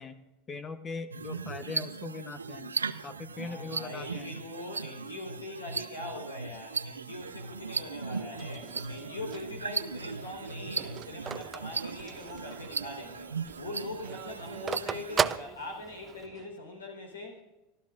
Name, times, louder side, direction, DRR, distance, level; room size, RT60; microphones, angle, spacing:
voice 1, 0.0-2.8 3.0-4.3, left 4 dB, 30° left, 10 dB, 0.9 m, -41 dB
sound 1, 1.1-15.4, right 5 dB, 90° right, 0.5 m, -38 dB
voice 2, 3.4-13.3 13.6-17.4, left 2 dB, 85° left, 3 dB, 4.2 m, -42 dB
sound 2, 7.2-16.5, right 8 dB, 45° right, 1.7 m, -51 dB
Telephone, 9.4-12.6 13.0-13.1 13.4-16.3, right 7 dB, 30° right, 0.5 m, -34 dB
25.0 x 13.5 x 2.6 m, 1.0 s
hypercardioid pair, 85°, 0 cm